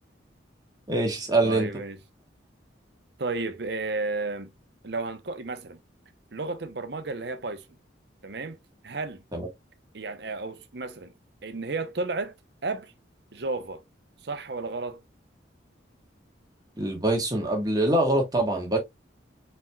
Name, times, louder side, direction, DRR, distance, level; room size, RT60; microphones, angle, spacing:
voice 1, 0.9-1.7 9.3-9.5 16.8-18.8, right 1 dB, 20° right, 1.4 m, -24 dB
voice 2, 1.4-2.0 3.2-4.5 4.8-5.8 6.3-7.6 8.2-8.6 8.8-9.2 9.9-11.1 11.4-12.3 12.6-12.9 13.3-13.8 14.2-15.0, right 3 dB, 60° right, 0.7 m, -32 dB
4.4 x 4.1 x 2.2 m
head